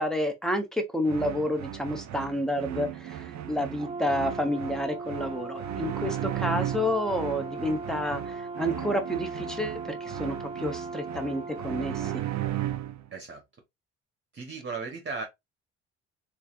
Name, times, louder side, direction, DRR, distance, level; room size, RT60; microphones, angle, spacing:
voice 1, 0.0-12.2, left 1 dB, ahead, 1.0 m, -30 dB
sound 1, 1.0-13.1, right 12 dB, 65° right, 0.6 m, -36 dB
Brass instrument, 3.8-12.2, right 4 dB, 20° right, 0.4 m, -38 dB
voice 2, 13.1-13.4 14.3-15.2, right 4 dB, 40° right, 1.1 m, -36 dB
3.4 x 3.3 x 2.5 m
cardioid pair, 90°, 30 cm